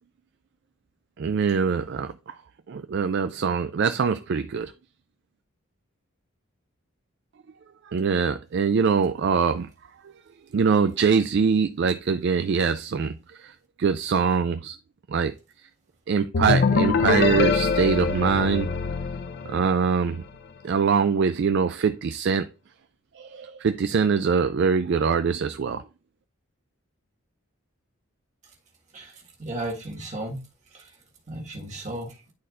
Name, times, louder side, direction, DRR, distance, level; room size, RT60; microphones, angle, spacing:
voice 1, 1.2-2.4 2.7-4.7 7.9-9.7 10.5-13.5 13.8-14.8 15.1-15.3 16.1-18.7 19.5-20.2 20.6-22.5 23.2-25.8, right 5 dB, 55° right, 0.3 m, -23 dB
sound 1, 16.3-20.0, left 4 dB, 45° left, 0.4 m, -24 dB
voice 2, 29.4-30.4 30.7-30.9 31.3-32.2, right 1 dB, 35° right, 1.7 m, -34 dB
11.0 x 4.2 x 2.5 m
head